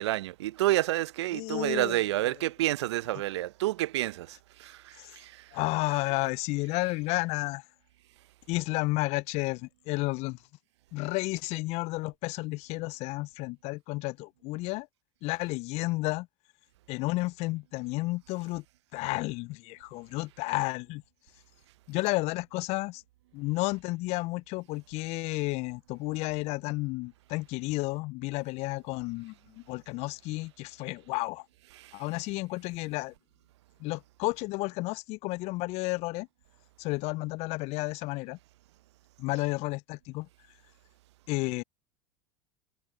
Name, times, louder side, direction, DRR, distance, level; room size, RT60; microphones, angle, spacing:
voice 1, 0.0-5.3 31.7-31.8, right 16 dB, 70° right, 0.7 m, -29 dB
voice 2, 1.3-2.0 5.0-5.1 5.5-7.6 8.5-10.4 10.9-14.9 15.2-16.3 16.9-18.6 18.9-21.0 21.9-23.0 23.3-31.5 31.9-33.1 33.8-36.3 36.8-38.4 39.2-40.3 41.3-41.6, left 22 dB, 45° left, 0.4 m, -32 dB
hypercardioid pair, 80°, 15 cm